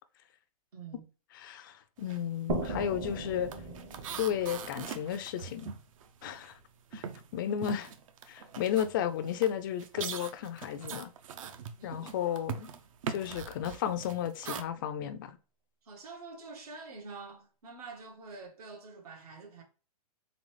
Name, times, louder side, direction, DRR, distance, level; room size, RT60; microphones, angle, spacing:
voice 1, 0.7-1.1 11.8-12.1 13.3-13.4 15.8-19.6, right 4 dB, 80° right, 1.6 m, -47 dB
voice 2, 1.3-3.5 4.2-5.7 6.2-6.6 6.9-7.0 7.3-7.9 8.3-11.1 11.8-12.7 13.1-15.4, left 9 dB, 35° left, 0.3 m, -33 dB
sound 1, 2.0-2.3 2.5-6.6 6.9-14.6, right 7 dB, 60° right, 0.6 m, -42 dB
sound 2, 2.5-6.0, right 2 dB, 40° right, 0.9 m, -38 dB
3.9 x 3.4 x 3.2 m
hypercardioid pair, 160°, 19 cm